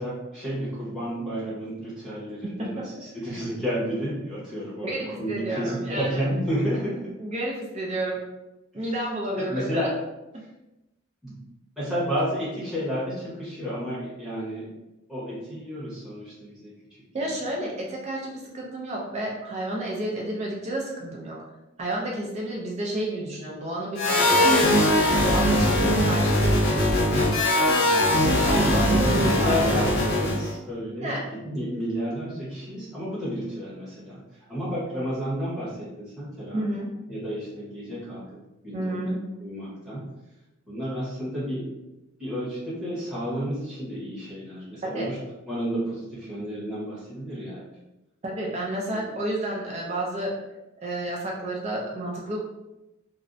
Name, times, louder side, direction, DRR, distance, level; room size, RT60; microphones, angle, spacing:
voice 1, 0.0-7.1 8.7-9.0 9.3-9.9 11.2-11.4 11.8-14.7 15.1-16.7 17.2-17.4 28.1-34.2 34.5-36.7 37.1-38.3 38.6-39.1 39.4-40.1 40.7-41.7 42.2-45.2 45.5-47.6 48.9-49.1, equal, 5° right, -11 dB, 0.9 m, -31 dB
voice 2, 4.8-6.3 7.2-8.2 8.7-9.9 17.1-21.4 21.8-24.7 25.2-27.4 28.0-30.0 31.0-31.3 36.5-36.9 38.7-39.2 44.8-45.1 48.2-50.4 50.8-52.4, right 1 dB, 30° right, -3 dB, 0.4 m, -31 dB
sound 1, 24.0-30.5, left 1 dB, 50° left, 0.6 m, -21 dB
2.6 x 2.0 x 2.5 m, 0.99 s
head